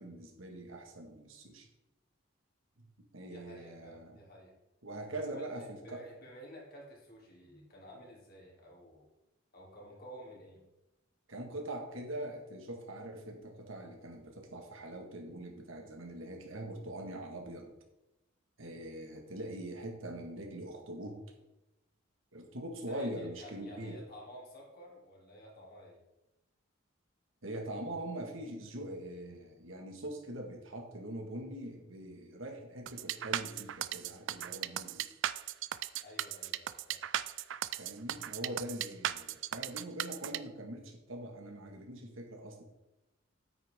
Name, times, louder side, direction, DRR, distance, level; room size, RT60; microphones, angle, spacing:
voice 1, 0.0-1.7 2.8-4.2 4.8-6.1 11.3-17.7 18.6-21.2 22.3-24.0 27.4-35.1 37.8-42.6, right 1 dB, 80° right, 2 dB, 1.8 m, -43 dB
voice 2, 3.3-4.5 5.2-9.1 9.5-10.6 22.9-26.0 36.0-37.0, equal, 50° left, -2 dB, 2.9 m, -52 dB
sound 1, 32.9-40.4, right 11 dB, 65° right, 0.4 m, -36 dB
9.4 x 9.1 x 3.7 m, 0.96 s
head